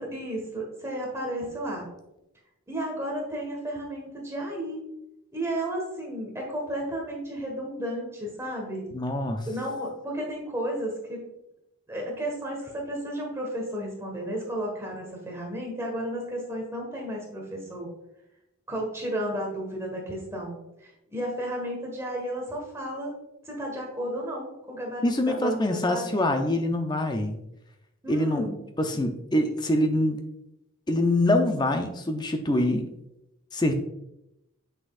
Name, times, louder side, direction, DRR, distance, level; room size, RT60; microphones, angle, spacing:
voice 1, 0.0-1.9 2.7-4.8 5.3-8.9 9.4-11.2 11.9-17.9 18.7-23.1 23.4-26.1 28.0-28.6, right 1 dB, 10° right, -1 dB, 1.4 m, -33 dB
voice 2, 8.9-9.5 25.0-27.4 28.1-28.5 28.8-30.2 30.9-32.9 33.5-33.7, left 1 dB, 20° left, 5 dB, 0.5 m, -25 dB
7.8 x 6.2 x 2.4 m, 0.88 s
head